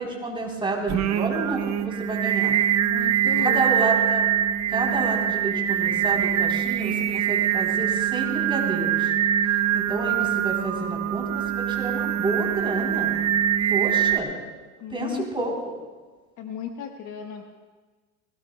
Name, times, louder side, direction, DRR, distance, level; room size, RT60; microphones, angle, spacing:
voice 1, 0.0-2.5 3.4-4.3 4.7-9.1 9.7-13.1 13.7-14.3 14.9-15.5, right 2 dB, 10° right, -1 dB, 3.6 m, -30 dB
Singing, 0.9-14.2, right 10 dB, 35° right, 0.9 m, -23 dB
voice 2, 2.8-3.9 14.8-15.6 16.4-17.4, left 8 dB, 40° left, 4 dB, 1.2 m, -35 dB
20.5 x 18.0 x 2.2 m, 1.4 s
hypercardioid pair, 105°, 44 cm